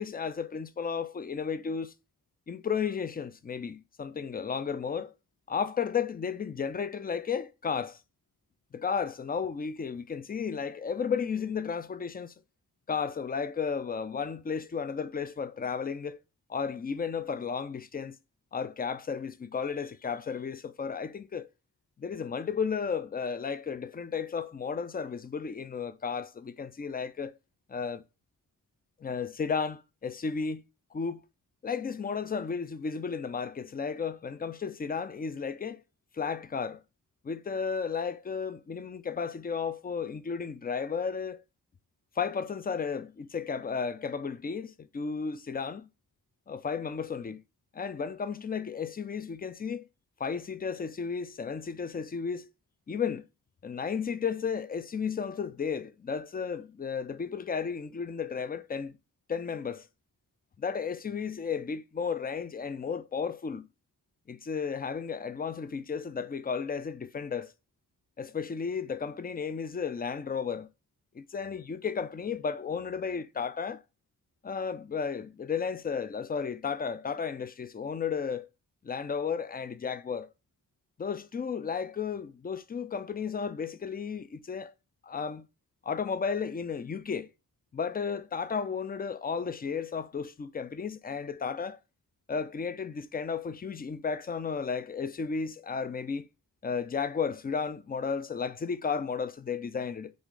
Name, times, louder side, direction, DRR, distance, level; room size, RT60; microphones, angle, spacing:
voice 1, 0.0-1.9 2.5-5.1 5.5-8.0 8.7-12.3 12.9-16.2 16.5-18.2 18.5-21.5 22.0-27.3 27.7-28.0 29.0-30.6 30.9-31.2 31.6-35.8 36.1-36.8 37.2-41.4 42.2-45.9 46.5-47.4 47.7-49.9 50.2-52.5 52.9-53.2 53.6-58.9 59.3-59.9 60.6-63.7 64.3-67.5 68.2-70.7 71.1-73.8 74.4-78.5 78.8-80.3 81.0-84.7 85.0-85.5 85.8-87.3 87.7-91.8 92.3-96.3 96.6-100.1, left 6 dB, 25° left, 0.5 m, -33 dB
3.9 x 2.5 x 3.2 m
supercardioid pair, 40°, 38 cm